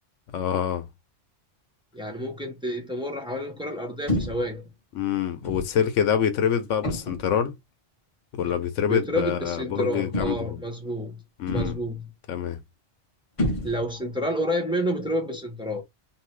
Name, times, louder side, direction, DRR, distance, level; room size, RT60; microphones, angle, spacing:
voice 1, 0.3-0.9 4.9-7.5 8.3-10.6 11.4-11.8 12.3-12.6, left 8 dB, 85° left, 1.0 m, -26 dB
voice 2, 1.9-4.7 8.9-11.2 11.5-12.0 13.6-15.8, equal, 5° right, 0.8 m, -29 dB
sound 1, 4.1-4.6 5.4-5.8 6.8-7.3 8.4-8.6 10.1-10.6 11.5-12.0 13.4-14.1, left 1 dB, 35° left, 0.7 m, -29 dB
2.9 x 2.7 x 3.1 m
omnidirectional pair, 1.2 m